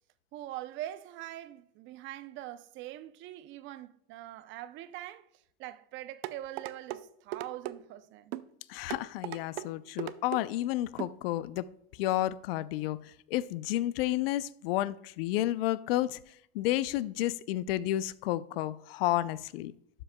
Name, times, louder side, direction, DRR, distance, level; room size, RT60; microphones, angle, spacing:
voice 1, 0.3-5.3 5.6-8.3, right 14 dB, 40° right, 0.5 m, -43 dB
sound 1, 6.2-7.0 7.3-7.8 8.3-8.5 8.9-9.7 10.0-10.4 11.0-11.2 11.6-11.7, right 14 dB, 90° right, 0.5 m, -37 dB
voice 2, 8.7-11.7 12.0-16.2 16.5-19.7, left 15 dB, 75° left, 0.5 m, -31 dB
12.0 x 7.8 x 2.2 m
supercardioid pair, 130°, 29 cm